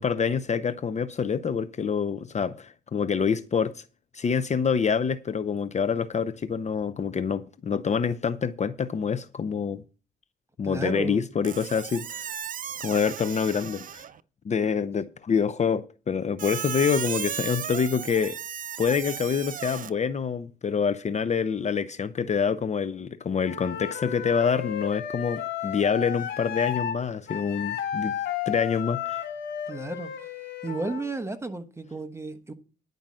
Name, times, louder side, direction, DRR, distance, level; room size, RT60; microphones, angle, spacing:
voice 1, 0.0-3.8 4.1-9.8 10.6-12.3 12.8-14.1 14.4-18.4 18.8-28.2 28.5-29.2, left 6 dB, 35° left, 0.6 m, -26 dB
voice 2, 10.6-11.3 29.7-30.1 30.6-32.5, right 2 dB, 15° right, 1.2 m, -33 dB
Squeak, 11.4-14.2 16.4-19.9, right 9 dB, 45° right, 0.5 m, -35 dB
Wind instrument woodwind instrument, 23.4-27.0 27.3-31.1, left 9 dB, 65° left, 2.8 m, -33 dB
10.5 x 5.3 x 7.5 m
cardioid pair, 90°, 20 cm